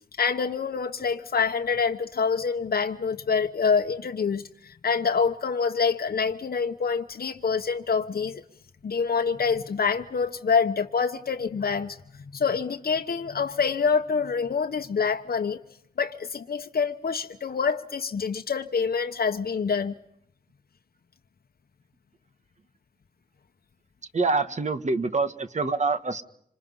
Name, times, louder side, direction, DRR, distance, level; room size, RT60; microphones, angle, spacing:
voice 1, 0.2-8.4 8.8-15.6 16.0-19.9, left 5 dB, 70° left, 5 dB, 1.0 m, -26 dB
voice 2, 24.1-26.2, right 3 dB, 45° right, 10 dB, 1.5 m, -25 dB
27.5 x 26.5 x 5.5 m, 0.73 s
wide cardioid pair, 110°, 16 cm